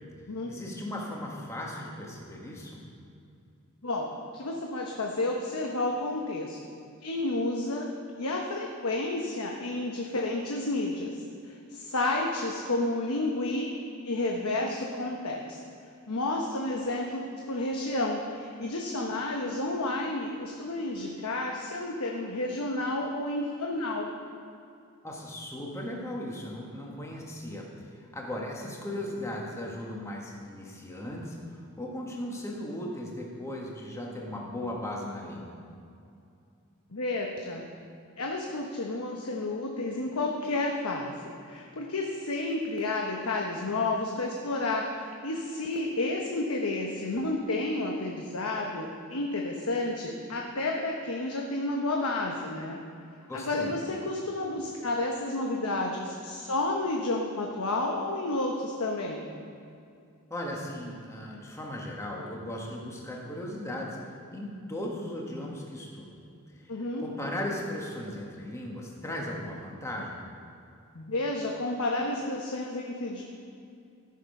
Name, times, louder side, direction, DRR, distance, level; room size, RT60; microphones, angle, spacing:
voice 1, 0.5-2.8 25.0-35.6 53.3-53.7 60.3-66.1 66.5-66.7 67.0-70.2, left 1 dB, 15° left, -1 dB, 1.5 m, -37 dB
voice 2, 3.8-6.6 7.0-7.9 8.2-13.7 14.0-15.6 16.1-24.1 36.9-37.6 38.2-52.8 53.3-59.3 66.7-67.0 70.9-73.2, left 2 dB, 80° left, 0 dB, 1.0 m, -31 dB
14.0 x 6.7 x 5.4 m, 2.5 s
head